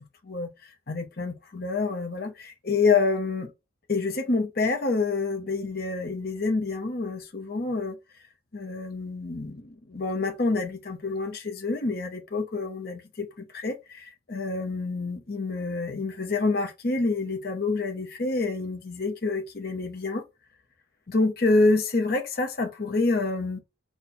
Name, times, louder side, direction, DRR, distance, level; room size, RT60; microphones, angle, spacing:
voice 1, 0.2-3.5 3.9-8.0 8.5-20.2 21.1-23.6, left 3 dB, 50° left, 0.8 m, -27 dB
4.3 x 2.3 x 3.9 m
head